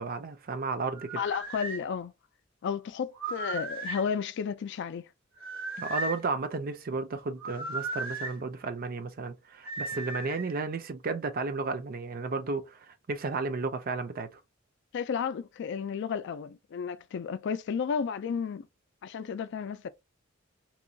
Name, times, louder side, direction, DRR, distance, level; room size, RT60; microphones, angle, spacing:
voice 1, 0.0-1.2 5.8-14.4, right 4 dB, 45° right, 0.5 m, -33 dB
sound 1, 0.9-1.8 3.1-4.1 5.4-6.2 7.4-8.3 9.6-10.5, right 2 dB, 85° right, 1.3 m, -36 dB
voice 2, 1.2-2.1 2.6-5.1 14.9-18.7 19.0-19.9, left 6 dB, 60° left, 0.3 m, -32 dB
3.0 x 2.3 x 2.6 m
head